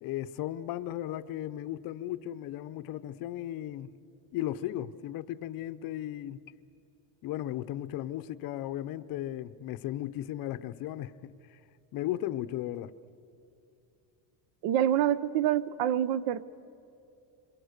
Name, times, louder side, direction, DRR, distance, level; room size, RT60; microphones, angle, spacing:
voice 1, 0.0-4.0 4.3-6.4 7.2-11.6 11.9-12.9, left 13 dB, 45° left, 0.7 m, -36 dB
voice 2, 14.6-16.4, right 11 dB, 65° right, 0.9 m, -26 dB
27.0 x 23.0 x 6.6 m
cardioid pair, 150°, 49 cm